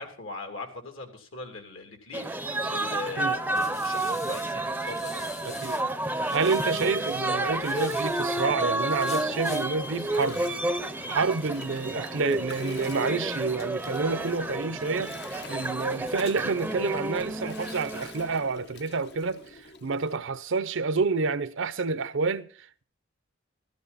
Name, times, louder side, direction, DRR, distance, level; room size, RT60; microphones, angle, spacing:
voice 1, 0.0-5.8 6.2-6.4 11.0-11.2, left 3 dB, 75° left, 2.9 m, -41 dB
sound 1, 2.1-18.5, right 2 dB, 10° right, 0.6 m, -30 dB
sound 2, 2.6-5.8 6.2-8.5 8.9-9.7, left 6 dB, 35° left, 0.7 m, -45 dB
voice 2, 5.4-5.8 6.3-10.4 11.1-22.8, right 4 dB, 65° right, 0.7 m, -29 dB
Gurgling, 6.9-20.2, left 4 dB, 55° left, 1.0 m, -47 dB
13.5 x 13.0 x 4.1 m
head